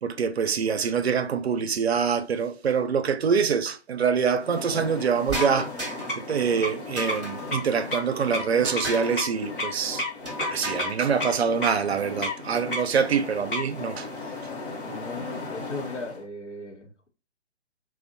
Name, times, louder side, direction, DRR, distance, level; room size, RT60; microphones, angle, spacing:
voice 1, 0.0-5.7 6.2-10.0 10.5-14.1, right 6 dB, 65° right, 0.5 m, -25 dB
sound 1, 4.4-16.2, left 2 dB, 50° left, 0.9 m, -34 dB
sound 2, 5.3-6.2 7.0-7.6 8.6-9.2 10.2-11.0, right 1 dB, ahead, 0.6 m, -34 dB
voice 2, 14.8-17.1, left 2 dB, 85° left, 0.9 m, -37 dB
2.6 x 2.1 x 2.5 m
figure-of-eight pair, 145°, 35 cm